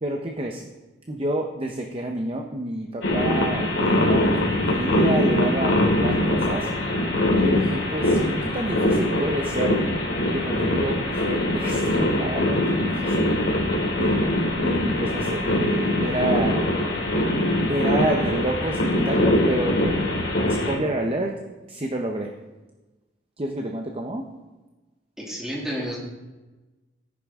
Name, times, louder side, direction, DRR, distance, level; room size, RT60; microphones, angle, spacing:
voice 1, 0.0-0.6 1.1-6.7 7.3-9.8 10.3-13.3 14.0-14.2 14.5-16.6 17.7-19.8 20.6-21.4 21.7-22.3 23.4-24.3, right 1 dB, 30° right, 3 dB, 0.8 m, -29 dB
sound 1, 3.0-20.8, left 1 dB, 75° left, 3.0 m, -22 dB
voice 2, 25.2-26.0, equal, 5° right, -5 dB, 2.5 m, -30 dB
13.5 x 10.0 x 3.7 m, 1.2 s
head